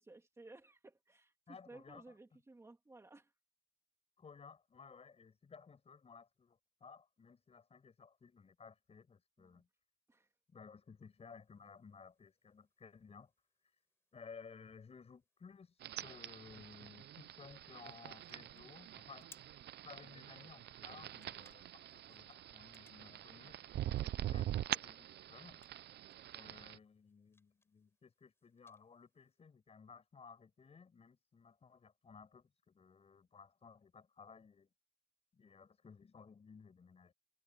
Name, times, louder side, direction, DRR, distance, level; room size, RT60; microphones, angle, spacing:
voice 1, 0.0-3.3 9.4-9.6 10.1-10.3, right 2 dB, 15° right, 2.6 m, -58 dB
voice 2, 1.5-2.0 4.2-9.7 10.5-13.3 14.1-15.8 16.0-19.3 19.8-25.6 26.3-34.7 35.3-37.1, left 5 dB, 30° left, 6.4 m, -57 dB
sound 1, 11.0-29.4, left 2 dB, 10° left, 6.1 m, -72 dB
sound 2, 15.8-26.8, right 13 dB, 60° right, 0.5 m, -44 dB
wide cardioid pair, 165°, 19 cm